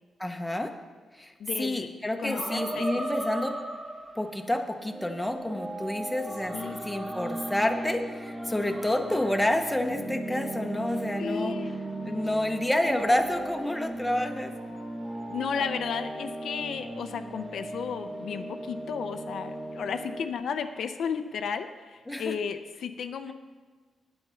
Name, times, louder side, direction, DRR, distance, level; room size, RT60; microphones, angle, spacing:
voice 1, 0.2-0.7 1.1-1.3 1.6-3.6 4.2-11.6 12.0-14.5 22.1-22.4, left 1 dB, 5° left, 5 dB, 0.8 m, -29 dB
voice 2, 1.4-1.9 2.2-3.0 6.5-6.8 11.2-11.8 15.3-23.3, left 6 dB, 75° left, 8 dB, 0.5 m, -33 dB
sound 1, 2.3-4.4 4.9-20.3, right 1 dB, 25° right, 1.6 m, -36 dB
8.8 x 8.7 x 5.6 m, 1.4 s
wide cardioid pair, 130°, 0 cm